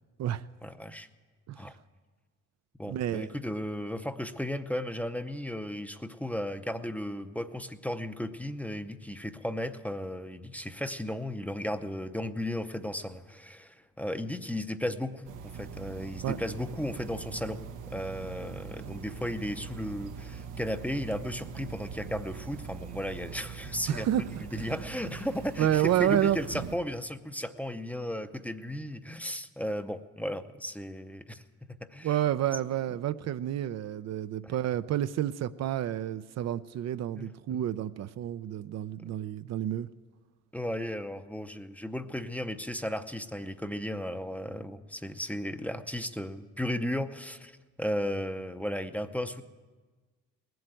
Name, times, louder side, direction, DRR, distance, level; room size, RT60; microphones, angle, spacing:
voice 1, 0.6-1.1 1.6-1.8 2.8-17.6 17.9-31.4 31.9-32.2 34.4-34.5 37.2-37.6 40.5-49.4, left 1 dB, 5° left, 10 dB, 0.6 m, -35 dB
voice 2, 2.9-3.3 16.2-16.4 23.9-24.2 25.6-26.4 32.0-39.9, right 11 dB, 60° right, 12 dB, 0.5 m, -29 dB
sound 1, 15.2-26.8, right 7 dB, 90° right, 0.9 m, -42 dB
19.0 x 7.9 x 9.0 m, 1.4 s
cardioid pair, 90°, 30 cm